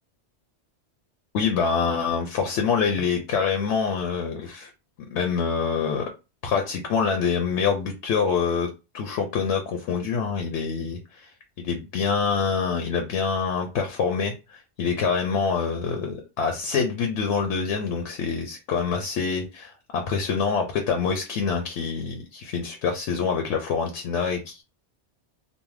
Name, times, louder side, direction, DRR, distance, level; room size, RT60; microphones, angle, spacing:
voice 1, 1.3-4.7 5.1-6.1 6.4-8.7 8.9-11.3 11.6-24.6, left 5 dB, 80° left, 0.9 m, -26 dB
2.6 x 2.1 x 3.1 m
omnidirectional pair, 1.2 m